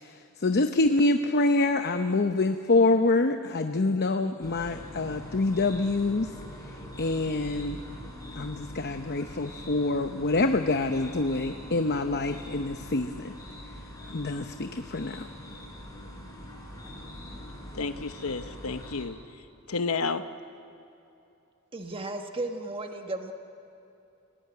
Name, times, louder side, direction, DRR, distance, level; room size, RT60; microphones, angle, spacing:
voice 1, 0.0-6.3 7.0-7.8 8.4-13.3 14.1-15.3, left 2 dB, 50° left, 7 dB, 0.8 m, -26 dB
sound 1, 4.4-19.0, equal, 15° left, 4.8 m, -43 dB
voice 2, 17.7-19.2 19.7-20.3, left 4 dB, 90° left, 10 dB, 0.9 m, -31 dB
voice 3, 21.7-23.3, right 2 dB, 25° right, 4 dB, 1.3 m, -34 dB
29.5 x 18.0 x 9.4 m, 2.9 s
head